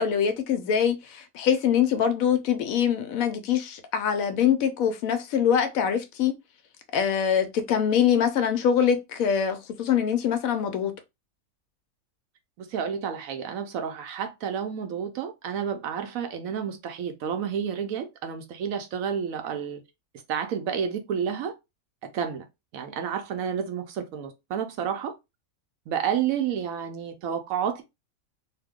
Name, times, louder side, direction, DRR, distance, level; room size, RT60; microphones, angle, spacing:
voice 1, 0.0-6.3 6.9-10.9, left 8 dB, 70° left, 0.9 m, -24 dB
voice 2, 12.6-19.8 20.3-21.5 22.1-22.4 22.7-25.1 25.9-27.8, right 8 dB, 70° right, 0.9 m, -30 dB
2.8 x 2.1 x 3.5 m
omnidirectional pair, 1.6 m